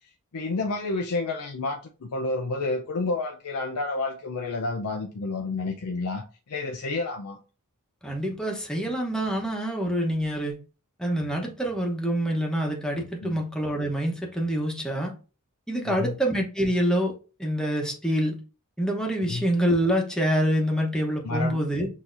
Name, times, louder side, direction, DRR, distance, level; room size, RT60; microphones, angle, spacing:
voice 1, 0.3-7.4 13.2-13.4 15.8-16.1 19.3-19.5 21.2-21.6, left 3 dB, 85° left, 0.5 m, -30 dB
voice 2, 8.0-10.5 11.0-15.1 15.7-17.1 17.4-18.4 18.8-21.9, equal, 5° left, 0.9 m, -26 dB
6.1 x 2.8 x 2.6 m
head